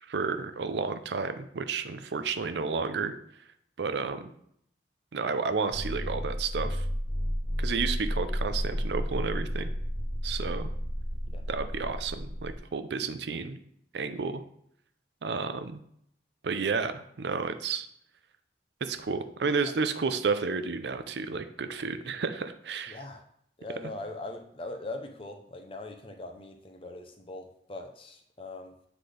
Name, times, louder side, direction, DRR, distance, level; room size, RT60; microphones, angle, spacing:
voice 1, 0.1-3.1 3.8-4.3 5.1-6.8 7.6-9.7 10.2-10.7 11.5-13.6 13.9-14.4 15.2-15.8 16.4-17.9 18.8-23.0, right 5 dB, 80° right, 10 dB, 0.5 m, -31 dB
sound 1, 5.7-12.6, equal, 35° right, 1.3 m, -32 dB
voice 2, 22.9-23.2 23.6-28.7, left 2 dB, 30° left, 4 dB, 0.6 m, -41 dB
7.8 x 4.0 x 3.3 m, 0.69 s
head